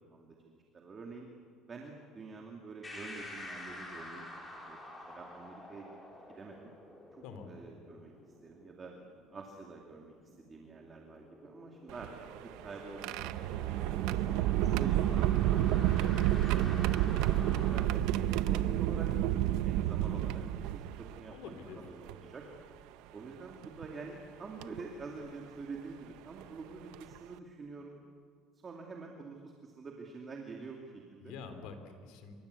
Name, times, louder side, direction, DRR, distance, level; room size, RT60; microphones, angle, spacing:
voice 1, 0.1-1.3 1.7-4.3 4.7-5.9 6.3-6.7 7.1-8.1 8.4-8.9 9.3-16.2 16.5-19.1 19.6-22.5 23.1-28.0 28.6-31.3, right 4 dB, 25° right, 1 dB, 2.4 m, -47 dB
sound 1, 2.8-17.8, left 1 dB, 15° left, 4.5 m, -49 dB
voice 2, 7.2-7.6 21.3-21.8 31.2-32.3, left 5 dB, 70° left, 8 dB, 3.7 m, -46 dB
sound 2, 11.9-21.2 22.1-22.2 23.6-23.9 24.6-24.8 26.4-26.5 26.9-27.2, right 13 dB, 75° right, 0.9 m, -30 dB
27.0 x 24.0 x 8.3 m, 2.1 s
cardioid pair, 150°, 0 cm